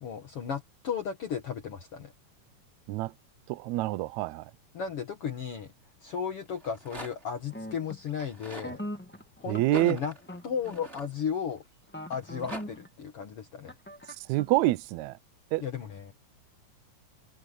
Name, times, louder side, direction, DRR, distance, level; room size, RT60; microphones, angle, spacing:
voice 1, 0.0-2.1 4.7-5.7 6.0-8.8 9.4-10.1 10.4-11.6 12.1-13.7 15.6-16.1, left 7 dB, 55° left, 2.5 m, -35 dB
voice 2, 3.5-4.5 9.5-10.0 14.2-15.2 15.5-15.6, right 17 dB, 80° right, 1.9 m, -27 dB
Rattle, 6.5-7.4 8.1-8.7 9.6-11.6 12.1-12.6, right 1 dB, 20° right, 6.3 m, -44 dB
sound 1, 7.5-8.1 8.6-9.6 10.2-11.1 11.9-12.9 13.7-14.5, equal, 10° left, 0.6 m, -41 dB
omnidirectional pair, 3.3 m